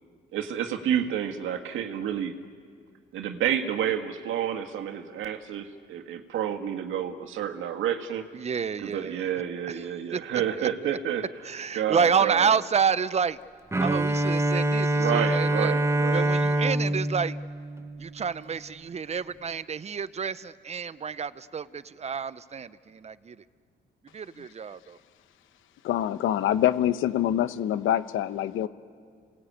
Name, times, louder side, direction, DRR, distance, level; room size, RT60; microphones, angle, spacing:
voice 1, 0.3-2.3 3.1-8.2 8.8-11.2 11.7-12.5 14.9-16.3, right 9 dB, 85° right, 5 dB, 1.8 m, -29 dB
voice 2, 8.3-9.3 9.7-9.9 10.1-10.9 11.4-13.4 13.8-15.7 16.1-17.4 18.0-23.4 24.1-25.0, right 6 dB, 35° right, 15 dB, 0.8 m, -29 dB
Bowed string instrument, 13.7-18.6, right 1 dB, 15° right, 1.0 m, -25 dB
voice 3, 25.8-28.7, left 11 dB, 85° left, 12 dB, 1.0 m, -25 dB
28.0 x 19.0 x 8.8 m, 2.1 s
cardioid pair, 90°, 20 cm